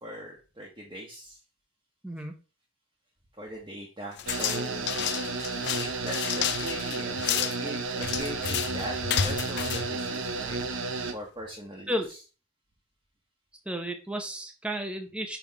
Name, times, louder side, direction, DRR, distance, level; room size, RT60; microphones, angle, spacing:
voice 1, 0.0-1.4 3.4-5.3 5.8-10.8 11.1-12.2, equal, 20° right, -3 dB, 1.2 m, -40 dB
voice 2, 2.0-2.3 11.9-12.1 13.7-15.4, equal, 5° right, 4 dB, 0.8 m, -33 dB
sound 1, 4.2-10.7, left 9 dB, 55° left, 0.5 m, -31 dB
sound 2, 4.3-11.1, right 4 dB, 60° right, 0.9 m, -32 dB
5.8 x 3.5 x 4.8 m, 0.34 s
head